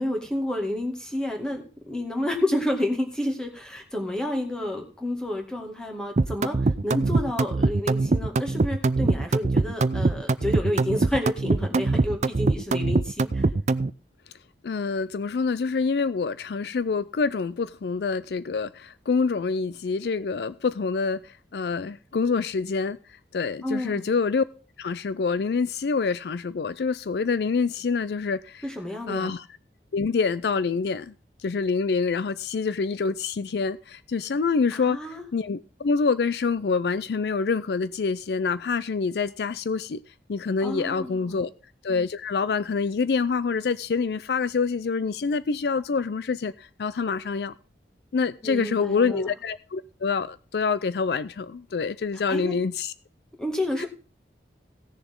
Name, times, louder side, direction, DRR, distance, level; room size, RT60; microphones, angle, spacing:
voice 1, 0.0-6.6 6.8-13.4 23.6-24.0 28.6-29.3 34.7-35.2 40.6-41.4 48.4-49.3 52.3-52.6 53.4-53.9, left 1 dB, 5° left, 2.0 m, -30 dB
sound 1, 6.2-13.9, right 3 dB, 40° right, 0.4 m, -23 dB
voice 2, 14.6-24.4 24.8-28.7 29.1-29.5 29.9-31.1 31.4-41.5 41.8-47.5 48.1-52.9 53.8-53.9, left 5 dB, 65° left, 0.4 m, -26 dB
17.0 x 6.9 x 3.7 m
head